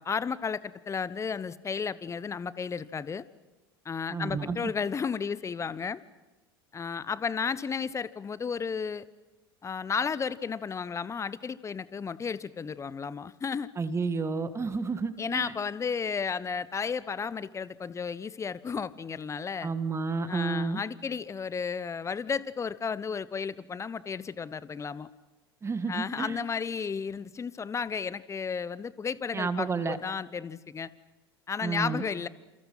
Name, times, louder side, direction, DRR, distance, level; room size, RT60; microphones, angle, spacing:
voice 1, 0.0-3.2 3.8-6.0 6.7-9.1 9.6-13.7 15.2-19.7 20.3-25.1 25.9-30.9 31.5-32.3, left 6 dB, 25° left, 18 dB, 1.0 m, -33 dB
voice 2, 4.1-4.7 13.8-15.5 19.6-20.8 25.6-26.4 29.3-30.0 31.6-32.0, right 4 dB, 20° right, 10 dB, 1.9 m, -31 dB
29.5 x 28.0 x 5.8 m, 1.1 s
hypercardioid pair, 80°, 13 cm